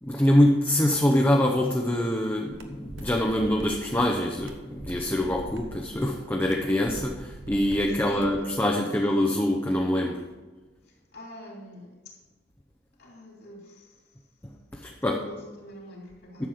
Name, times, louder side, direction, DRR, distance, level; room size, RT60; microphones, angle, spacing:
voice 1, 0.0-10.2 14.7-15.2 16.4-16.5, left 1 dB, 10° left, 0 dB, 0.7 m, -24 dB
sound 1, 2.5-8.4, right 1 dB, 80° right, 1.2 m, -43 dB
voice 2, 7.9-9.1 11.1-12.1 13.0-14.0 15.0-16.5, left 1 dB, 60° left, -2 dB, 3.0 m, -45 dB
11.5 x 7.4 x 4.9 m, 1.3 s
head